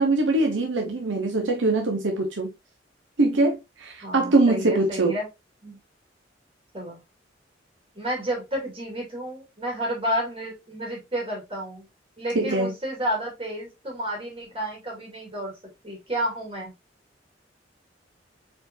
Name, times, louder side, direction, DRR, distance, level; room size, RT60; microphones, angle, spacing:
voice 1, 0.0-2.5 3.2-5.1 12.3-12.7, right 2 dB, 80° right, 1.0 m, -22 dB
voice 2, 4.0-5.3 5.6-5.8 6.7-7.0 7.9-11.8 12.2-15.6 15.8-16.7, right 1 dB, 30° right, 2.7 m, -31 dB
4.6 x 4.5 x 2.6 m
head